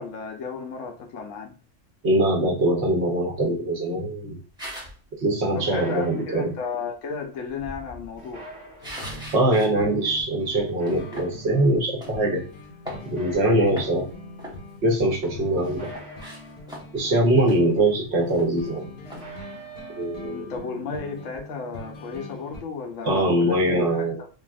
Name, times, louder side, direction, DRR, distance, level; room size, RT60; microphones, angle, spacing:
voice 1, 0.0-1.5 5.5-8.5 20.2-23.6 23.9-24.3, left 5 dB, 85° left, 3 dB, 1.0 m, -34 dB
voice 2, 2.0-4.4 5.2-6.5 9.3-12.4 13.0-14.1 14.8-15.9 16.9-18.9 20.0-20.5 23.0-24.2, right 1 dB, 60° right, 0 dB, 1.0 m, -22 dB
sound 1, 4.6-5.0 7.5-9.7 10.1-10.3 10.9-11.3 12.0-12.2 12.6-13.4 13.7-14.1 14.4-15.4 15.8-17.1 17.5-17.6 17.9-18.0 18.3-18.7 19.1-19.3, equal, 5° right, 0.8 m, -40 dB
sound 2, 5.6-6.8 8.2-9.3 10.6-11.6 13.0-14.2 15.6-17.0 19.0-20.3, right 3 dB, 35° right, 1.1 m, -45 dB
sound 3, 8.8-22.6, left 1 dB, 55° left, 0.8 m, -43 dB
3.3 x 2.4 x 2.3 m, 0.36 s
omnidirectional pair, 1.3 m